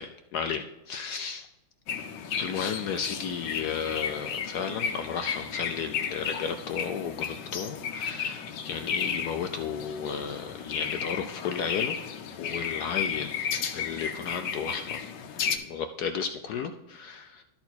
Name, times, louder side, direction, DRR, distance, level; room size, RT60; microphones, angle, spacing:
voice 1, 0.0-1.5 2.3-12.1 12.4-15.0 15.4-17.4, left 6 dB, 85° left, 7 dB, 0.8 m, -33 dB
sound 1, 1.9-15.6, left 7 dB, 65° left, 1.3 m, -34 dB
13.0 x 4.4 x 4.1 m, 1.1 s
omnidirectional pair, 2.3 m